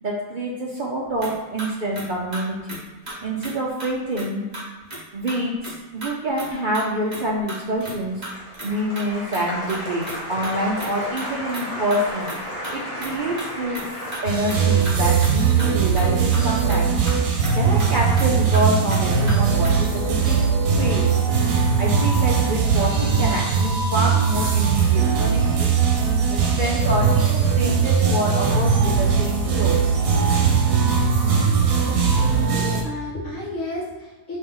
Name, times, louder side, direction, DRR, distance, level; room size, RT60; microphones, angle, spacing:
voice 1, 0.0-2.8 3.2-4.4 5.1-8.3 8.6-12.3 12.7-13.8 14.2-17.0 17.6-20.5 20.8-21.1 21.8-25.7 26.3-29.8, right 1 dB, 60° right, -3 dB, 0.5 m, -26 dB
sound 1, 1.2-1.7 1.9-2.0 2.3-2.4 2.7-2.8 3.1-3.5 3.8-4.3 4.5-5.0 5.3-5.4 5.6-5.7 6.0-6.5 6.7-8.7 8.9-9.4 9.7-10.5 10.8-10.9 11.2-12.4 12.6-13.9 14.1-14.2 14.5-14.6 14.8-15.3 15.6-16.1 16.3-16.4 16.7-16.8 17.1-17.2 17.4-18.3 18.5-18.6 18.9-19.0 19.3-19.4 19.6-19.9, right 1 dB, 30° right, 1.2 m, -34 dB
Applause, 7.7-18.1 18.4-19.0, equal, 25° left, 1.2 m, -35 dB
sound 2, 14.3-32.8, right 6 dB, 85° right, 1.2 m, -20 dB
voice 2, 31.8-34.4, left 2 dB, 60° left, -7 dB, 1.2 m, -33 dB
4.1 x 2.8 x 3.8 m, 1.3 s
omnidirectional pair, 1.5 m